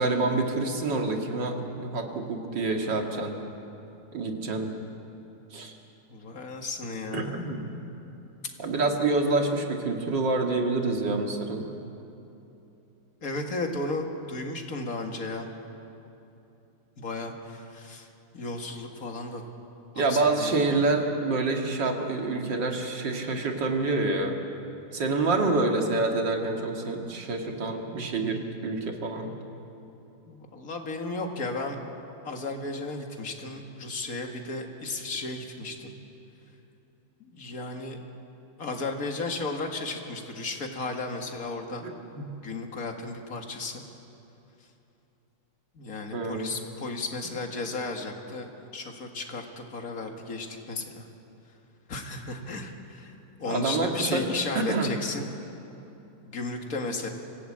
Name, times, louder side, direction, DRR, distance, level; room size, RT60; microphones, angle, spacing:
voice 1, 0.0-3.4 4.1-4.7 5.5-5.7 7.1-7.7 8.6-11.7 20.0-24.4 24.9-29.3 41.8-42.3 46.1-46.5 53.5-54.3 54.5-54.9, right 3 dB, 70° right, 2 dB, 2.7 m, -27 dB
voice 2, 6.1-7.5 13.2-15.5 17.0-18.1 18.3-19.4 19.9-20.6 30.3-31.8 32.2-35.9 37.2-38.0 38.6-41.8 42.4-43.8 45.7-51.1 51.9-55.3 56.2-57.1, left 3 dB, 50° left, 3 dB, 2.3 m, -34 dB
25.0 x 17.0 x 8.7 m, 2.9 s
omnidirectional pair, 2.0 m